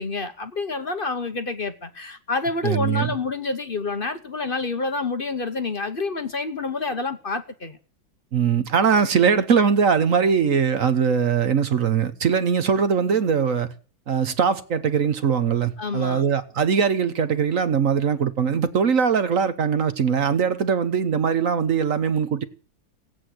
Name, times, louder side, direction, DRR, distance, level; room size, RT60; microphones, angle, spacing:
voice 1, 0.0-7.8 15.8-16.3, left 3 dB, 45° left, 0.7 m, -28 dB
voice 2, 2.6-3.1 8.3-13.7 14.1-22.4, right 6 dB, 50° right, 1.1 m, -21 dB
17.5 x 8.5 x 7.7 m
omnidirectional pair, 2.2 m